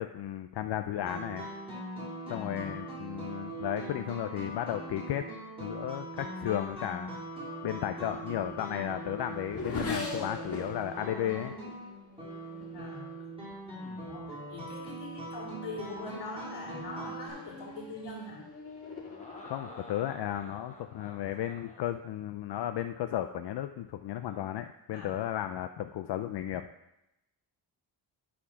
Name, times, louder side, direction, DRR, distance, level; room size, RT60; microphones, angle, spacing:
voice 1, 0.0-1.5 2.3-5.3 5.6-7.1 7.6-11.5 19.4-26.7, left 11 dB, 70° left, 8 dB, 0.5 m, -34 dB
sound 1, 1.0-17.3, right 2 dB, 15° right, 3.3 m, -41 dB
voice 2, 2.3-2.8 12.7-13.0 14.0-18.4 24.9-25.2, left 2 dB, 90° left, -3 dB, 2.8 m, -42 dB
Race car auto racing / Accelerating revving vroom, 8.2-13.7 14.5-14.9 15.3-21.3, left 3 dB, 35° left, 2.0 m, -43 dB
sound 2, 10.9-11.7 12.3-12.4 13.7-14.3 16.6-17.3 19.0-21.9 24.1-24.5, left 1 dB, 15° left, 1.1 m, -51 dB
9.9 x 4.3 x 5.7 m, 0.88 s
wide cardioid pair, 155°, 42 cm